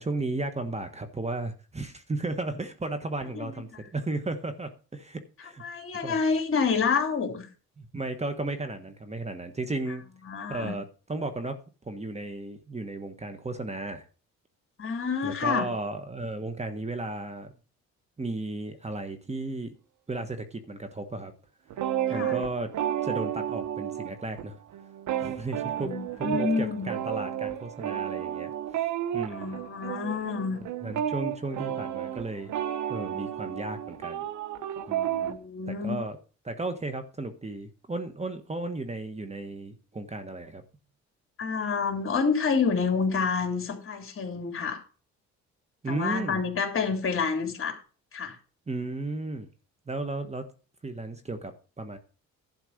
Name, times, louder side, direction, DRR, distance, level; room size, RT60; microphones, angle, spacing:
voice 1, 0.0-5.6 6.0-6.2 7.8-10.0 10.5-11.6 11.8-14.0 15.2-17.5 18.2-19.7 20.1-21.3 22.1-22.7 23.0-24.6 25.2-28.5 28.8-28.9 29.1-29.6 30.8-32.5 32.9-34.3 34.9-35.4 35.7-36.2 36.4-40.6 45.8-46.4 48.7-49.5 49.9-50.5 50.8-52.0, right 2 dB, 20° right, 8 dB, 1.5 m, -34 dB
voice 2, 3.3-3.8 5.4-7.5 10.3-10.8 14.8-15.7 22.1-22.4 25.8-26.9 29.3-30.6 35.2-36.0 41.4-44.8 45.9-47.8 48.1-48.4, left 5 dB, 45° left, 3 dB, 3.4 m, -28 dB
sound 1, 21.7-24.4 24.7-35.3, right 11 dB, 80° right, 1.2 m, -32 dB
11.5 x 4.5 x 8.0 m, 0.36 s
cardioid pair, 90°, 30 cm